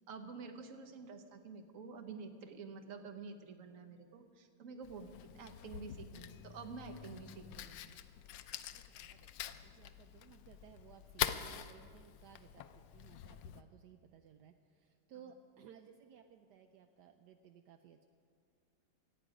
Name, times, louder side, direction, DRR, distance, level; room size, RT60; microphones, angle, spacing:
voice 1, 0.1-7.8, right 4 dB, 50° right, 7 dB, 1.1 m, -49 dB
Fire, 4.8-13.6, left 11 dB, 80° left, 1.4 m, -45 dB
voice 2, 8.7-18.0, right 8 dB, 75° right, 6 dB, 0.9 m, -60 dB
25.5 x 9.0 x 5.0 m, 2.2 s
omnidirectional pair, 2.4 m